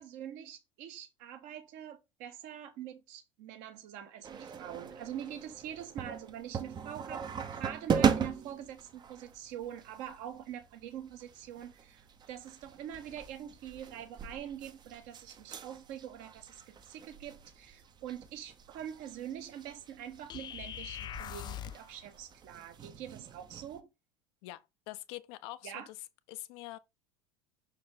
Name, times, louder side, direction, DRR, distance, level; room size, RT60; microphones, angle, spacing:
voice 1, 0.0-23.9 25.6-25.9, right 10 dB, 50° right, 1.4 m, -44 dB
sound 1, 4.2-23.8, right 7 dB, 25° right, 0.9 m, -39 dB
sound 2, 20.3-21.9, left 11 dB, 25° left, 0.4 m, -42 dB
voice 2, 24.4-26.0 26.3-26.8, left 18 dB, 50° left, 0.7 m, -45 dB
6.3 x 4.5 x 3.8 m
figure-of-eight pair, 75°, 16 cm